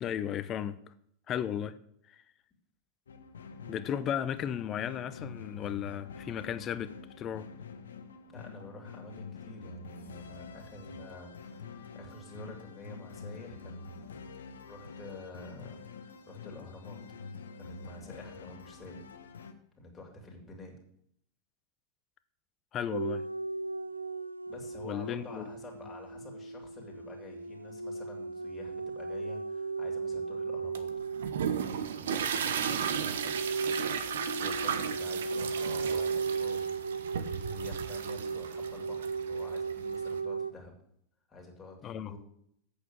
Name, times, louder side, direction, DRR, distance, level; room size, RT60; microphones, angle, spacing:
voice 1, 0.0-0.8 1.3-1.7 2.1-2.2 3.7-6.9 7.2-7.5 22.7-23.2 24.8-25.4 41.8-42.1, left 9 dB, 30° left, 0.7 m, -34 dB
sound 1, 3.1-19.5, left 4 dB, 65° left, 0.9 m, -47 dB
voice 2, 8.3-14.1 14.7-17.0 17.5-19.0 19.8-20.8 24.5-30.9 31.6-36.7 37.3-40.7 41.3-42.2, left 2 dB, 15° left, 2.9 m, -49 dB
sound 2, 22.9-32.0 33.1-40.5, right 4 dB, 85° right, 0.3 m, -36 dB
sound 3, 30.7-40.2, right 8 dB, 60° right, 0.9 m, -35 dB
8.5 x 6.7 x 8.0 m
figure-of-eight pair, 90°, 0 cm